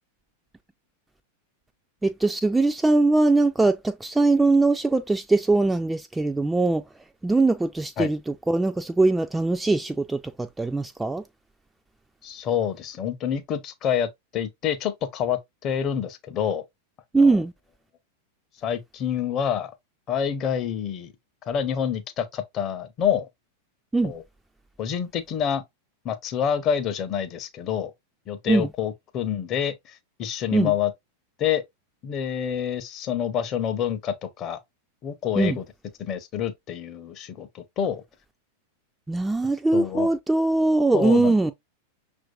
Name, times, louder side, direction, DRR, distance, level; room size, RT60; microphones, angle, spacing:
voice 1, 2.0-6.8 7.2-11.2 17.1-17.5 23.9-24.1 28.5-28.7 30.5-30.7 35.4-35.6 39.1-41.5, right 2 dB, 10° right, 0.3 m, -21 dB
voice 2, 12.2-16.6 17.1-17.4 18.6-19.7 20.1-21.1 21.5-23.3 24.0-24.2 24.8-25.6 26.0-27.9 28.3-30.9 31.4-31.6 32.0-34.6 35.0-35.6 36.0-38.0 39.7-40.1 40.9-41.3, left 8 dB, 35° left, 0.6 m, -27 dB
6.0 x 2.5 x 2.2 m
figure-of-eight pair, 90°, 0 cm